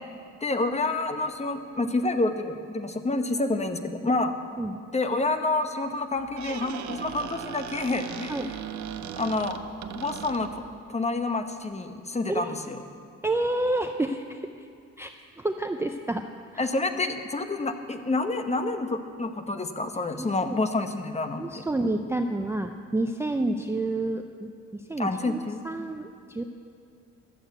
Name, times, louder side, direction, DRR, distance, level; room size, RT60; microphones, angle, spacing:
voice 1, 0.4-4.3 4.9-8.4 9.2-9.6 9.9-10.6 10.9-12.8 16.6-21.4 25.0-25.6, left 2 dB, 20° left, 7 dB, 1.0 m, -28 dB
Squeak, 6.1-10.8, right 9 dB, 70° right, 0.7 m, -38 dB
voice 2, 13.2-14.7 15.0-16.2 16.5-16.7 20.1-20.6 21.4-26.4, right 2 dB, 10° right, 5 dB, 0.5 m, -29 dB
12.5 x 7.9 x 8.0 m, 2.3 s
cardioid pair, 90°, 30 cm